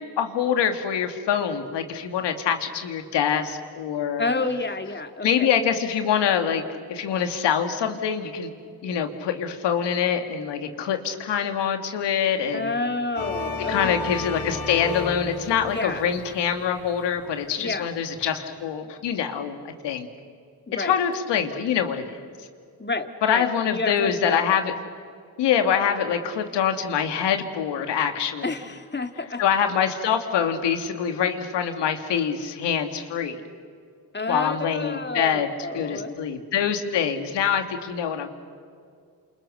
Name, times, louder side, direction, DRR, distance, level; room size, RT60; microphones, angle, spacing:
voice 1, 0.0-4.3 5.2-6.6 6.9-8.5 8.8-12.7 13.7-20.1 20.8-22.3 23.2-24.7 25.4-28.5 29.4-33.4 34.3-35.5 35.7-38.3, left 8 dB, 85° left, 6 dB, 2.4 m, -25 dB
voice 2, 4.2-5.5 12.5-13.9 15.7-16.1 17.6-18.0 20.7-21.0 22.8-24.4 28.4-29.4 34.1-36.2, left 3 dB, 25° left, 7 dB, 2.4 m, -29 dB
sound 1, 13.1-17.6, left 3 dB, 55° left, 4.8 m, -33 dB
30.0 x 28.0 x 6.6 m, 2.2 s
supercardioid pair, 60°, 41 cm